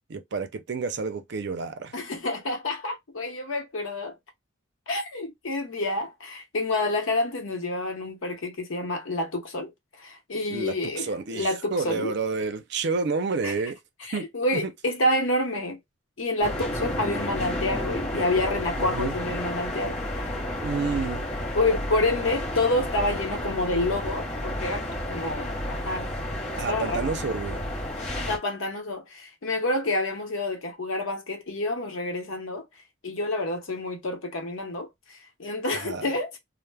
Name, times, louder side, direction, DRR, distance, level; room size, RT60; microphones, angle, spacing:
voice 1, 0.1-1.9 10.5-13.8 14.1-14.3 14.6-14.7 18.8-19.1 20.6-21.2 26.6-27.7 35.7-36.1, right 4 dB, 60° right, 0.5 m, -30 dB
voice 2, 1.9-4.1 4.9-9.7 10.0-12.1 13.4-13.5 14.0-15.8 16.2-20.3 21.5-26.1 26.5-27.3 28.2-32.6 33.0-34.9 35.4-36.3, left 2 dB, 85° left, 0.8 m, -28 dB
sound 1, 16.4-28.4, left 1 dB, 35° left, 0.8 m, -31 dB
2.1 x 2.0 x 3.2 m
head